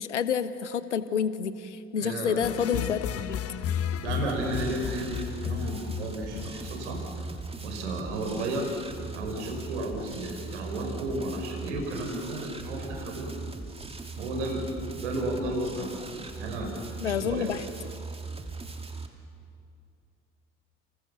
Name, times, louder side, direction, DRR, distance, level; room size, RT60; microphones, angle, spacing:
voice 1, 0.0-3.4 17.0-17.6, left 7 dB, 80° left, 14 dB, 1.0 m, -29 dB
voice 2, 2.0-2.4 4.0-7.0 7.6-8.7 9.1-13.5 14.2-14.6 15.0-16.7 17.0-17.5, right 2 dB, 75° right, 2 dB, 5.1 m, -33 dB
sound 1, 2.4-7.4, left 8 dB, 40° left, 1.2 m, -33 dB
sound 2, 4.3-19.1, right 3 dB, 15° right, 2.7 m, -40 dB
30.0 x 28.0 x 7.0 m, 2.4 s
figure-of-eight pair, 55°, 35 cm